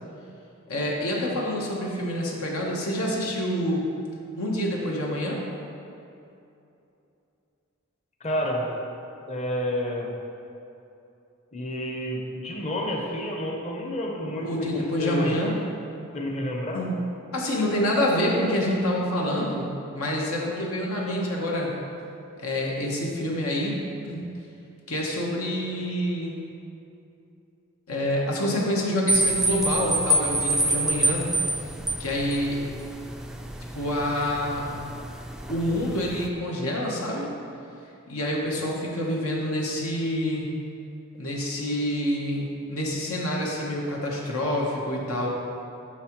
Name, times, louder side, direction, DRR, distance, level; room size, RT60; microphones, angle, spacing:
voice 1, 0.7-3.8 4.4-5.4 14.4-15.5 16.7-16.9 17.3-19.7 19.9-21.7 22.4-23.8 24.0-24.2 24.9-26.4 27.9-31.3 32.0-32.6 33.7-34.7 35.5-37.3 38.1-40.5 41.2-45.3, left 1 dB, 75° left, -2 dB, 1.1 m, -27 dB
voice 2, 8.2-8.6 9.3-10.1 11.5-15.4 16.1-16.8, equal, 30° left, -1 dB, 0.9 m, -29 dB
sound 1, 29.1-36.3, right 1 dB, 5° right, 0.3 m, -27 dB
9.4 x 6.1 x 3.1 m, 2.8 s
head